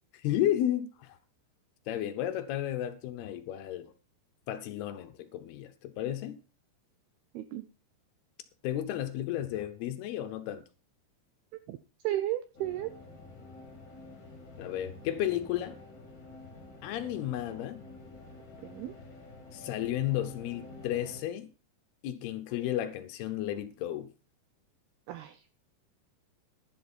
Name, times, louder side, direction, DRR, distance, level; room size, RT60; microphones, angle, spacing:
voice 1, 0.2-1.2 1.9-3.9 4.5-6.4 8.6-10.6 14.6-15.8 16.8-17.8 19.5-21.5 22.0-24.1, left 12 dB, 75° left, 2.5 m, -33 dB
voice 2, 7.3-7.6 11.7-11.8 12.0-12.9 18.6-18.9 25.1-25.6, right 14 dB, 85° right, 2.2 m, -34 dB
sound 1, 12.5-21.2, left 2 dB, 30° left, 3.3 m, -49 dB
11.0 x 11.0 x 4.4 m
omnidirectional pair, 5.3 m